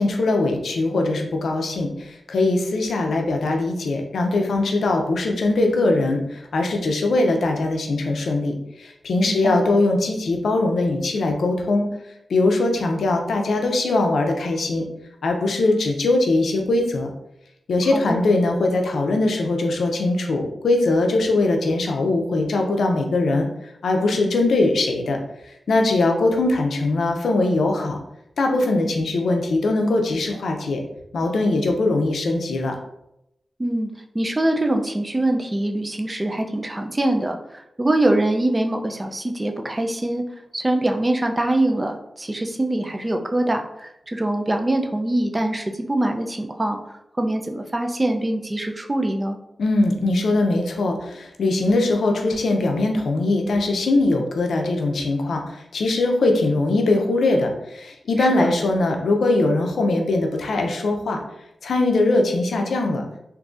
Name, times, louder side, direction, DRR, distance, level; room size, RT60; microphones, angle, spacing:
voice 1, 0.0-11.8 12.3-14.8 15.2-17.1 17.7-23.5 23.8-25.2 25.5-28.0 28.4-30.8 31.1-32.8 49.6-61.2 61.6-63.0, left 2 dB, 85° left, 3 dB, 0.5 m, -21 dB
voice 2, 9.2-9.6 17.9-18.2 33.6-33.9 34.1-40.2 40.5-46.8 47.2-49.4 58.2-58.5, right 1 dB, 25° right, 4 dB, 0.4 m, -23 dB
3.8 x 2.6 x 2.4 m, 0.83 s
cardioid pair, 65°, 0 cm